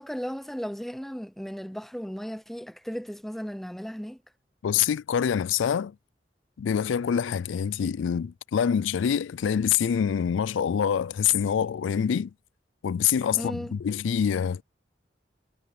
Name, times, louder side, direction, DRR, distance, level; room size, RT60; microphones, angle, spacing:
voice 1, 0.0-4.2 13.3-13.7, equal, ahead, 0.4 m, -35 dB
voice 2, 4.6-5.9 6.6-12.3 12.8-14.6, left 8 dB, 80° left, 0.3 m, -25 dB
head